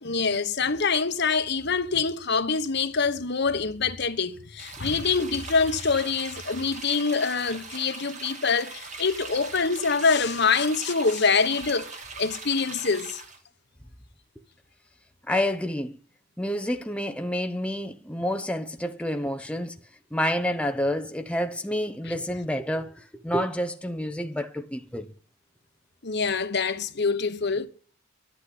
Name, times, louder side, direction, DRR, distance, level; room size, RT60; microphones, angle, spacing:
voice 1, 0.0-11.9 12.2-13.2 26.0-27.7, left 5 dB, 60° left, 1.2 m, -25 dB
sound 1, 4.6-13.4, right 4 dB, 40° right, 2.3 m, -41 dB
voice 2, 15.3-16.0 16.4-19.7 20.1-25.1, equal, 5° left, 0.8 m, -29 dB
11.5 x 8.6 x 10.0 m
head